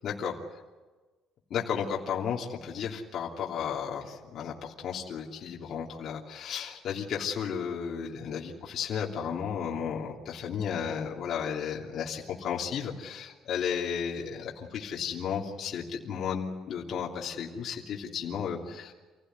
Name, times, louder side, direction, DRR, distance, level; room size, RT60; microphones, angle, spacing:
voice 1, 0.0-0.3 1.5-18.9, left 7 dB, 50° left, -2 dB, 3.1 m, -33 dB
27.5 x 16.5 x 9.5 m, 1.3 s
cardioid pair, 165°, 0 cm